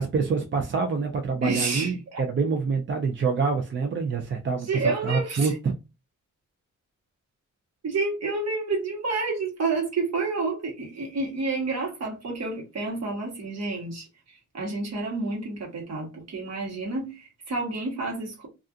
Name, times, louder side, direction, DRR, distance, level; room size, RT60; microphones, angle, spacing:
voice 1, 0.0-5.7, right 5 dB, 40° right, 0.4 m, -26 dB
voice 2, 1.4-2.2 4.7-5.5 7.8-14.1 14.5-18.5, right 3 dB, 55° right, 1.1 m, -29 dB
2.4 x 2.3 x 2.3 m
wide cardioid pair, 100°, 31 cm